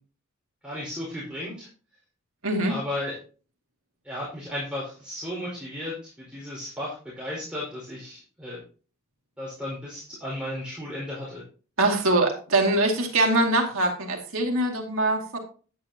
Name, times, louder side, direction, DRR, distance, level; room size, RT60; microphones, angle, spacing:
voice 1, 0.6-1.7 2.7-3.2 4.0-8.6 9.4-11.4, left 1 dB, 5° right, -7 dB, 4.6 m, -34 dB
voice 2, 2.4-2.8 11.8-15.4, right 2 dB, 70° right, 1 dB, 2.3 m, -23 dB
10.0 x 9.9 x 2.9 m, 0.39 s
head